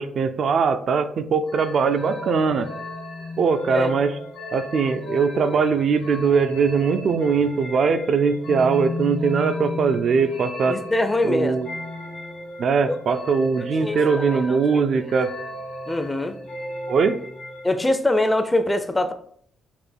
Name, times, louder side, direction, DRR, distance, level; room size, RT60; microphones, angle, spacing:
voice 1, 0.0-2.7 3.4-4.1 4.5-10.8 11.2-11.7 12.6-15.3 16.9-17.2, right 5 dB, 60° right, 0.3 m, -21 dB
sound 1, 1.5-17.9, left 1 dB, 85° left, 1.2 m, -35 dB
voice 2, 10.7-11.6 12.9-13.0 13.8-14.0 14.3-14.8 15.9-16.4 17.6-19.1, left 1 dB, 15° left, 0.4 m, -23 dB
4.2 x 2.4 x 3.3 m
supercardioid pair, 70°, 0 cm